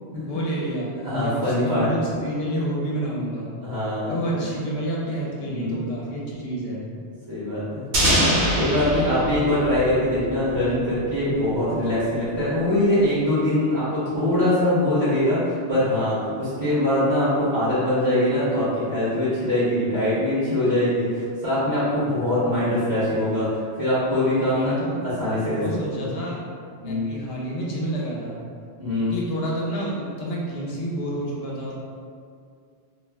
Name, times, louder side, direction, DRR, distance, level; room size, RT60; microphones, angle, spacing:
voice 1, 0.2-3.6 4.1-6.9 24.5-25.0 25.6-26.4 26.8-28.4 29.0-31.7, right 1 dB, 65° left, -4 dB, 0.8 m, -29 dB
voice 2, 1.0-1.9 3.6-4.1 5.4-5.8 7.3-7.9 8.6-23.5 23.8-24.7 25.0-25.6 25.9-26.1 26.8-27.0 28.8-29.1, left 1 dB, 25° right, -12 dB, 0.7 m, -23 dB
sound 1, 7.9-10.7, equal, 75° right, 0.9 m, -23 dB
2.3 x 2.0 x 3.3 m, 2.2 s
omnidirectional pair, 1.1 m